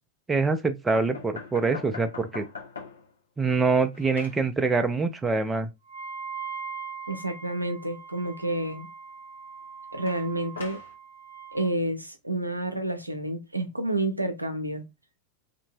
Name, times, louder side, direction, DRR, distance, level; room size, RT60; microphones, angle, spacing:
voice 1, 0.3-2.5 3.4-5.7, right 4 dB, 15° right, 0.4 m, -25 dB
sound 1, 0.9-3.1 3.5-4.4 10.1-10.9, left 5 dB, 75° left, 1.0 m, -42 dB
Wind instrument woodwind instrument, 5.9-11.7, right 6 dB, 65° right, 0.9 m, -41 dB
voice 2, 7.1-8.9 9.9-10.8 11.5-14.8, right 1 dB, 85° right, 0.5 m, -29 dB
2.7 x 2.6 x 2.7 m
figure-of-eight pair, 90°, 0 cm